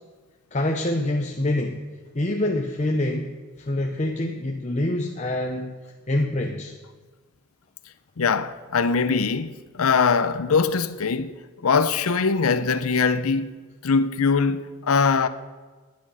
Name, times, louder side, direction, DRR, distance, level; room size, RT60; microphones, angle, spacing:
voice 1, 0.5-1.8 2.1-3.3 3.6-5.7 6.1-6.7, left 1 dB, 30° left, 0.7 m, -25 dB
voice 2, 8.2-13.6 13.8-15.3, left 5 dB, 80° left, 0.6 m, -22 dB
10.5 x 9.5 x 7.6 m
head